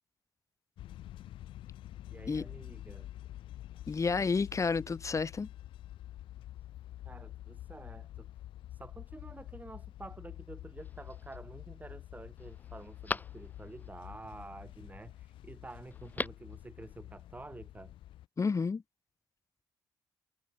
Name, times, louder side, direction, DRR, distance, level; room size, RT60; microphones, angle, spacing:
sound 1, 0.8-18.3, left 13 dB, 80° left, 2.1 m, -48 dB
voice 1, 2.1-3.1 6.6-6.7 7.0-8.4 8.7-18.0, right 2 dB, 20° right, 5.0 m, -49 dB
voice 2, 3.9-5.5 18.4-18.8, left 4 dB, 35° left, 3.5 m, -30 dB
Telephone, 10.8-11.4 11.9-12.0 12.4-13.9 15.9-16.6 16.8-16.9, left 2 dB, 20° left, 2.9 m, -40 dB
cardioid pair, 70°, 9 cm